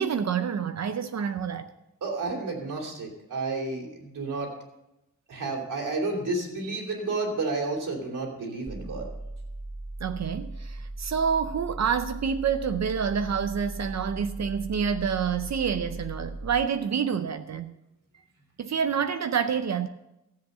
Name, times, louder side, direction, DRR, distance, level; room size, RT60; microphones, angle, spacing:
voice 1, 0.0-1.7 10.0-17.7 18.6-19.9, right 7 dB, 60° right, 0.6 m, -28 dB
voice 2, 2.0-4.5 5.3-9.1, right 3 dB, 90° right, 3.2 m, -31 dB
sound 1, 8.7-16.7, right 2 dB, 10° right, 0.4 m, -38 dB
13.5 x 7.9 x 6.7 m
wide cardioid pair, 140°, 31 cm